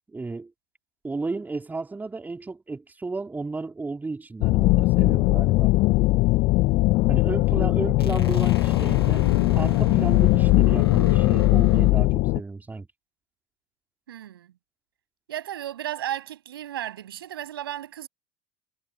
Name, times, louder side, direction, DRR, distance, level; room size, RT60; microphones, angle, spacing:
voice 1, 0.1-0.5 1.0-5.7 7.1-9.2 9.5-12.9, right 3 dB, 15° right, 4.0 m, -33 dB
sound 1, 4.4-12.4, left 21 dB, 50° left, 0.8 m, -20 dB
sound 2, 8.0-11.9, left 6 dB, 80° left, 1.5 m, -32 dB
voice 2, 14.1-14.5 15.3-18.1, right 12 dB, 70° right, 7.0 m, -34 dB
figure-of-eight pair, 75°, 13 cm